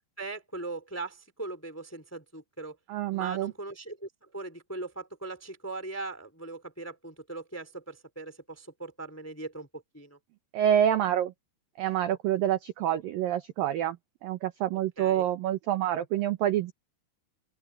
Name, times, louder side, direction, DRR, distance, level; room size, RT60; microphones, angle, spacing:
voice 1, 0.2-2.8 3.1-10.2 15.0-15.3, right 3 dB, 5° left, 1.8 m, -40 dB
voice 2, 2.9-3.5 10.5-11.3 11.8-14.0 14.2-16.7, right 11 dB, 75° right, 2.1 m, -27 dB
open air
omnidirectional pair, 5.2 m